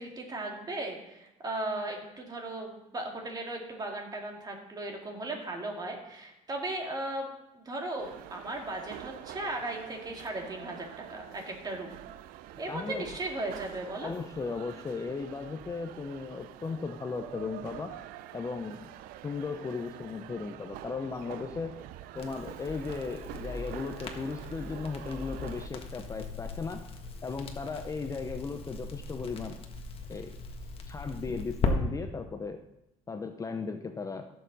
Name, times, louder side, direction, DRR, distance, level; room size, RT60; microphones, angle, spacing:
voice 1, 0.0-7.3 7.5-12.0 12.6-14.1, right 2 dB, 25° right, 1 dB, 2.3 m, -37 dB
sound 1, 8.0-25.7, right 13 dB, 80° right, 0.5 m, -46 dB
voice 2, 12.7-13.1 14.0-18.0 18.3-18.9 19.2-21.8 22.1-26.8 27.2-29.6 30.1-30.4 30.9-32.6 33.1-34.2, left 4 dB, 20° left, 7 dB, 0.6 m, -36 dB
Crackle, 22.2-31.7, left 4 dB, 40° left, 1.4 m, -38 dB
15.0 x 6.7 x 4.1 m, 0.90 s
cardioid pair, 110°, 15 cm